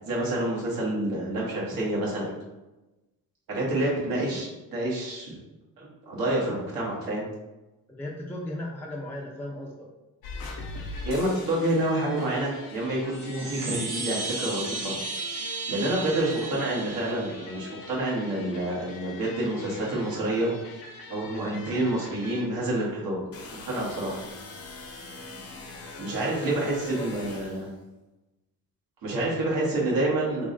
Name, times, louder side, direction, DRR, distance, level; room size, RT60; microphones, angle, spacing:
voice 1, 0.0-2.3 3.5-5.4 5.8-7.3 11.0-14.9 15.7-20.5 21.1-23.2 23.7-24.2 26.0-27.7 29.0-30.5, right 1 dB, 75° right, -4 dB, 1.3 m, -28 dB
voice 2, 7.9-9.9 26.2-27.2 29.6-29.8, left 1 dB, 5° left, -3 dB, 0.4 m, -37 dB
sound 1, 10.2-22.8, left 3 dB, 85° left, 0.7 m, -42 dB
Chime, 13.0-17.7, right 3 dB, 60° right, 0.8 m, -35 dB
sound 2, 23.3-27.7, left 3 dB, 40° left, 0.6 m, -42 dB
3.5 x 2.1 x 3.8 m, 1.0 s
cardioid pair, 125°, 35 cm